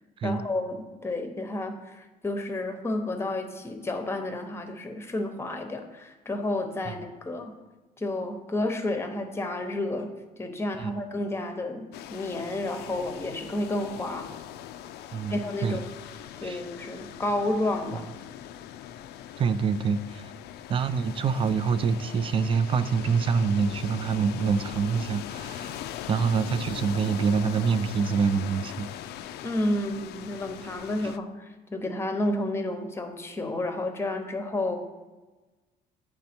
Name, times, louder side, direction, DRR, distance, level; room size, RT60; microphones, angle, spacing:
voice 1, 0.2-7.5 8.0-14.3 15.3-15.9 16.4-18.1 29.4-34.8, left 1 dB, 15° left, 6 dB, 0.8 m, -31 dB
sound 1, 11.9-31.2, left 11 dB, 75° left, 0.4 m, -41 dB
voice 2, 15.1-15.8 16.4-16.6 19.4-20.2 20.7-25.8 26.1-28.9, right 6 dB, 30° right, 13 dB, 0.3 m, -26 dB
9.2 x 3.4 x 4.3 m, 1.2 s
cardioid pair, 110°, 17 cm